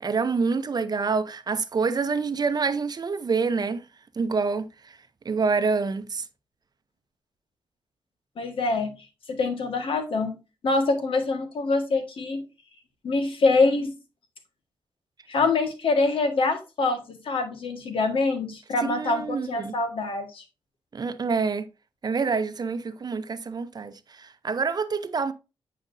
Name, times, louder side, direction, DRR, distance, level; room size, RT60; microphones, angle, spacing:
voice 1, 0.0-3.9 4.2-5.0 5.2-6.3 18.8-19.8 20.9-21.7 22.0-25.3, right 4 dB, 45° right, 0.7 m, -27 dB
voice 2, 8.4-8.9 9.3-10.4 10.6-12.4 13.0-13.9 15.3-20.4, left 3 dB, 75° left, 1.6 m, -25 dB
9.0 x 5.0 x 2.6 m
cardioid pair, 70°, 9 cm